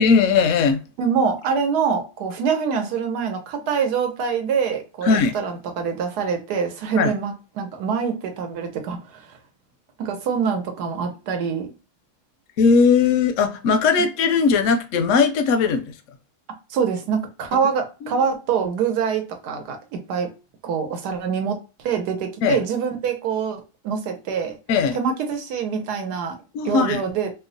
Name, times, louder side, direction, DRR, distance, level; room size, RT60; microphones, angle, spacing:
voice 1, 0.0-0.8 5.0-5.4 7.0-7.1 12.6-15.8 18.0-18.2 22.4-22.6 24.7-25.0 26.5-27.0, left 5 dB, 70° left, 0.8 m, -18 dB
voice 2, 1.0-9.2 10.0-11.7 16.7-20.3 20.6-24.6 24.9-26.4 26.6-27.3, right 6 dB, 85° right, 1.3 m, -25 dB
3.0 x 2.1 x 3.8 m
omnidirectional pair, 1.7 m